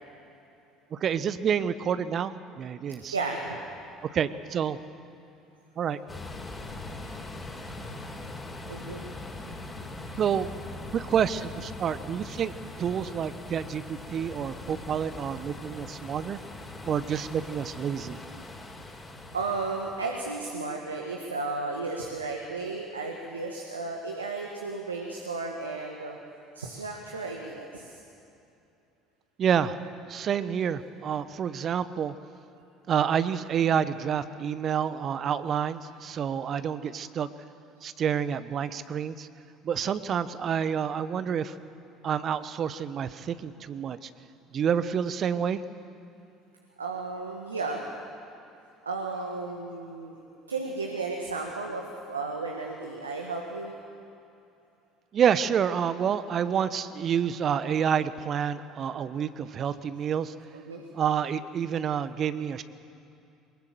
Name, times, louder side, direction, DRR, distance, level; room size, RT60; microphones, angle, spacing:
voice 1, 0.9-3.2 4.1-4.8 5.8-6.0 10.2-10.5 10.9-16.4 16.9-18.2 29.4-29.8 30.1-32.1 32.9-37.3 37.8-39.3 39.6-41.5 42.0-44.1 44.5-45.6 55.1-60.3 60.9-62.6, right 8 dB, 45° right, 14 dB, 0.9 m, -28 dB
voice 2, 3.1-3.6 7.0-7.2 8.7-9.0 19.3-26.2 26.5-28.0 44.8-44.9 46.8-47.8 48.8-50.2 50.5-53.7 60.5-60.8, right 3 dB, 90° right, 1 dB, 1.6 m, -34 dB
sound 1, 6.1-20.3, left 2 dB, 20° left, 4.2 m, -41 dB
23.0 x 21.0 x 7.7 m, 2.6 s
hypercardioid pair, 60°, 0 cm